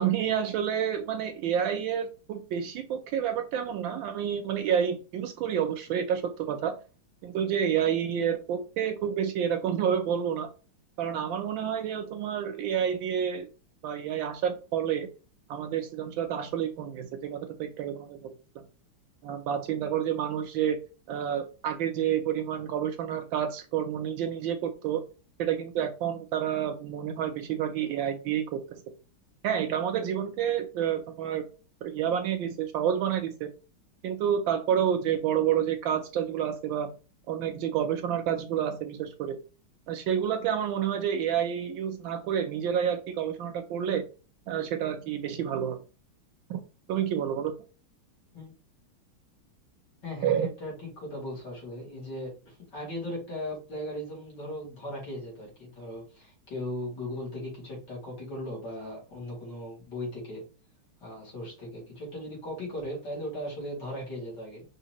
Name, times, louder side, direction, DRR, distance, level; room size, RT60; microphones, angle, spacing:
voice 1, 0.0-6.7 7.2-10.5 11.0-13.5 13.8-15.1 15.5-18.7 19.2-20.8 21.1-25.0 25.4-28.6 29.4-31.5 31.8-33.5 34.0-36.9 37.3-39.4 39.9-44.0 44.5-45.8 46.5-46.6 46.9-47.5 50.2-50.5, right 9 dB, 75° right, 7 dB, 1.3 m, -29 dB
voice 2, 50.0-60.4 61.0-64.6, left 1 dB, 55° left, -4 dB, 2.9 m, -38 dB
5.6 x 3.1 x 2.9 m, 0.34 s
omnidirectional pair, 2.3 m